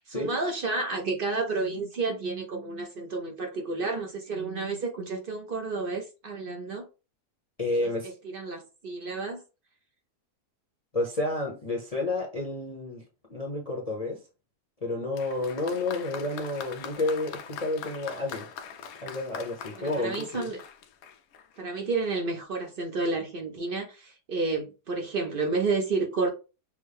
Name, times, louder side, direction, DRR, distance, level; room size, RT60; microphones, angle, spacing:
voice 1, 0.0-6.8 7.8-9.4 19.8-20.6 21.6-26.3, right 3 dB, 60° right, 0.5 m, -31 dB
voice 2, 7.6-8.1 10.9-13.0 13.3-14.2 14.8-18.5 19.0-20.5, left 2 dB, 30° left, 0.7 m, -30 dB
Applause, 15.1-21.6 22.5-22.6, left 7 dB, 70° left, 1.0 m, -42 dB
6.1 x 2.1 x 3.4 m
omnidirectional pair, 1.7 m